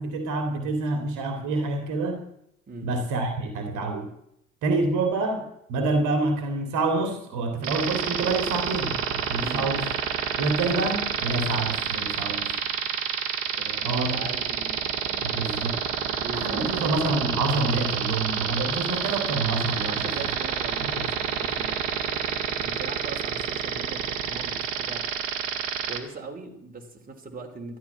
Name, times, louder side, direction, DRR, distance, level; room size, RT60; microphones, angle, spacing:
voice 1, 0.0-2.2 2.8-4.1 4.6-9.9 10.4-12.5 13.8-14.2 15.2-15.8 16.3-20.3 20.8-21.0, right 3 dB, 50° right, 6 dB, 2.6 m, -27 dB
sound 1, 7.6-26.0, right 8 dB, 65° right, 1.8 m, -28 dB
voice 2, 13.5-15.6 16.0-16.9 19.8-25.1 25.8-27.8, right 3 dB, 20° right, 1 dB, 3.1 m, -40 dB
13.0 x 11.0 x 7.1 m, 0.76 s
figure-of-eight pair, 65°, 39 cm